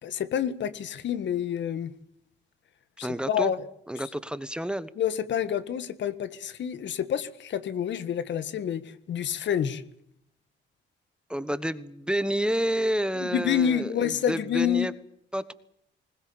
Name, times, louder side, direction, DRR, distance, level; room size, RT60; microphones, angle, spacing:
voice 1, 0.0-1.9 3.0-3.6 5.0-9.8 13.2-14.9, left 9 dB, 65° left, 14 dB, 1.6 m, -28 dB
voice 2, 3.0-3.5 3.9-4.9 11.3-14.9 15.3-15.5, right 1 dB, 5° right, 14 dB, 1.2 m, -29 dB
20.5 x 19.5 x 8.8 m, 0.69 s
cardioid pair, 90°, 20 cm